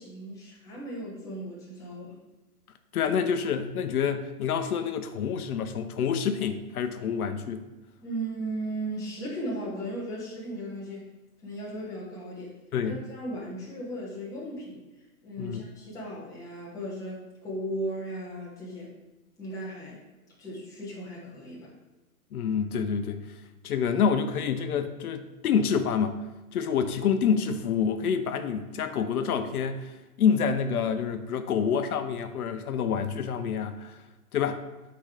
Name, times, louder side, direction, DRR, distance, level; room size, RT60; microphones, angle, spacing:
voice 1, 0.0-2.2 8.0-11.2 11.4-12.5 12.8-14.8 15.2-18.9 19.4-20.0 20.4-21.7, right 1 dB, 10° left, -6 dB, 1.1 m, -36 dB
voice 2, 2.9-7.6 12.7-13.0 15.4-15.6 22.3-23.4 23.6-26.2 26.5-29.9 30.2-34.0 34.3-34.6, left 7 dB, 80° left, 9 dB, 0.7 m, -27 dB
9.1 x 3.9 x 3.3 m, 1.1 s
hypercardioid pair, 160°, 44 cm